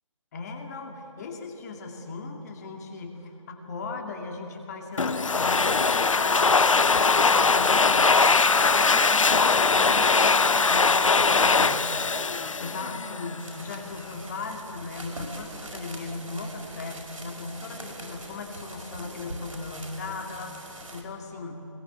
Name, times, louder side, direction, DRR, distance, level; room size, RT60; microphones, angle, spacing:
voice 1, 0.3-8.3 8.6-11.9 12.5-21.7, left 3 dB, 30° left, 3 dB, 2.5 m, -37 dB
Domestic sounds home sounds, 5.0-13.4, left 4 dB, 70° left, 1.1 m, -21 dB
sound 1, 13.3-21.0, right 1 dB, 80° right, 5.6 m, -42 dB
21.5 x 21.0 x 8.8 m, 3.0 s
figure-of-eight pair, 155°, 17 cm